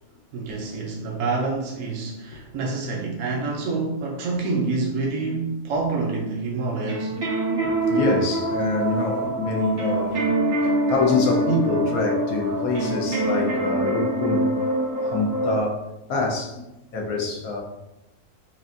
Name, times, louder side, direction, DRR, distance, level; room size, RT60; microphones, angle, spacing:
voice 1, 0.3-7.2, right 3 dB, 70° right, 0.9 m, -27 dB
sound 1, 6.9-15.6, right 1 dB, 90° right, 1.4 m, -25 dB
voice 2, 7.5-10.2 10.9-14.5 14.9-15.8 16.1-16.6 16.9-17.6, left 3 dB, 85° left, 1.2 m, -25 dB
5.6 x 2.6 x 2.5 m
omnidirectional pair, 1.5 m